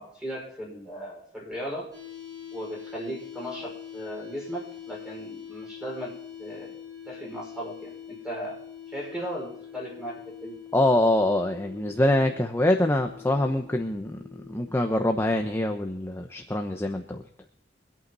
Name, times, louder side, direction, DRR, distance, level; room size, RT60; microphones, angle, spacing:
voice 1, 0.0-1.9 2.5-6.1 6.4-6.7 7.1-8.6 8.9-10.6, equal, 5° right, -2 dB, 5.6 m, -37 dB
sound 1, 1.9-15.9, left 9 dB, 20° right, 6.0 m, -44 dB
voice 2, 10.7-14.2 14.5-17.2, left 1 dB, 15° left, 4 dB, 1.0 m, -24 dB
25.0 x 8.8 x 4.0 m, 0.69 s
head